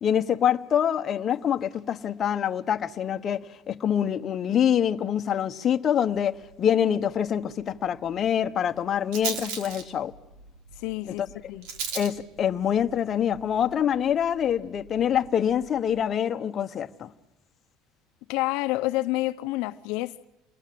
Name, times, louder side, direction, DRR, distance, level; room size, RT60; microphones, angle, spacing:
voice 1, 0.0-10.1 11.1-11.2 11.9-17.1, left 9 dB, 35° left, 1.1 m, -25 dB
Rattle, 6.1-16.0, right 5 dB, 80° right, 3.1 m, -41 dB
voice 2, 10.8-11.7 18.3-20.2, left 19 dB, 75° left, 0.8 m, -29 dB
29.0 x 20.5 x 7.7 m
cardioid pair, 140°, 0 cm